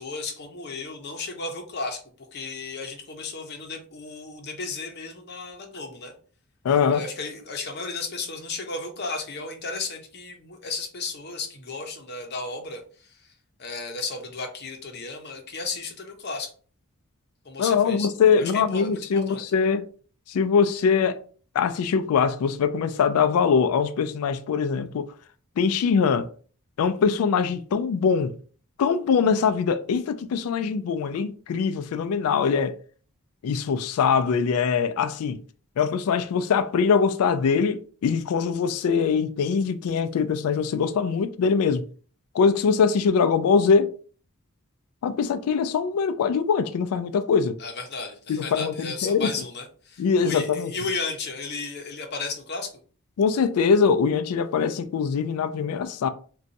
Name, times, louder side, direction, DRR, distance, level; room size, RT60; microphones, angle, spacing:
voice 1, 0.0-2.0 2.3-6.1 6.9-12.8 13.6-16.5 17.4-18.1 18.4-19.4 47.6-52.7, left 4 dB, 45° left, 0.7 m, -34 dB
voice 2, 6.6-7.0 17.6-19.9 20.3-21.2 21.5-25.1 25.6-26.3 26.8-28.3 28.8-32.8 33.4-35.4 35.8-41.8 42.3-43.9 45.0-47.6 48.3-49.3 50.0-50.7 53.2-56.1, left 6 dB, 75° left, 0.3 m, -22 dB
2.5 x 2.3 x 4.0 m
head